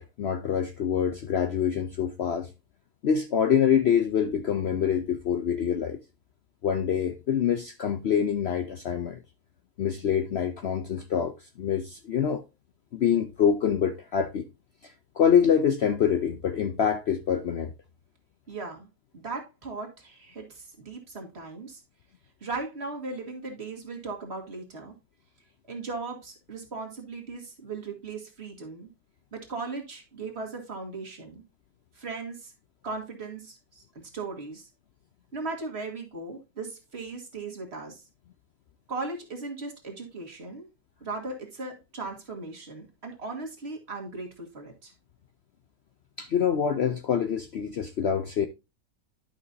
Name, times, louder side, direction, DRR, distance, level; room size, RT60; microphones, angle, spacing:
voice 1, 0.0-2.5 3.0-6.0 6.6-9.2 9.8-11.3 11.6-12.4 12.9-14.5 14.8-17.7 46.2-48.5, left 8 dB, 85° left, 0.5 m, -25 dB
voice 2, 18.5-18.9 19.1-21.8 22.4-24.9 25.7-28.9 29.3-31.4 31.9-32.5 32.8-34.7 35.3-38.0 38.9-40.7 41.0-44.9, right 3 dB, 40° right, 1.9 m, -37 dB
11.0 x 5.9 x 2.6 m
omnidirectional pair, 1.9 m